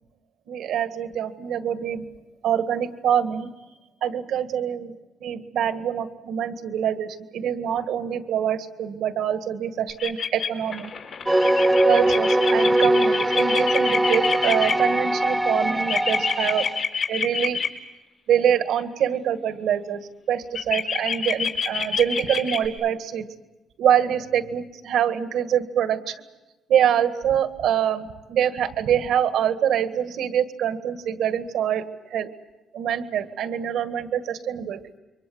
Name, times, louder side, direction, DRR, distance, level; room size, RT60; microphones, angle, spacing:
voice 1, 0.5-2.1 2.4-5.0 5.2-10.9 11.8-16.7 17.1-17.6 18.3-20.0 20.3-23.2 23.8-26.1 26.7-32.3 32.7-34.8, right 9 dB, 80° right, 9 dB, 1.8 m, -25 dB
sound 1, 9.9-14.7 15.9-17.7 20.5-22.7, left 6 dB, 60° left, 4.7 m, -26 dB
sound 2, 11.3-16.8, right 1 dB, 10° right, 1.2 m, -21 dB
28.0 x 23.5 x 7.9 m, 1.1 s
cardioid pair, 90°, 0 cm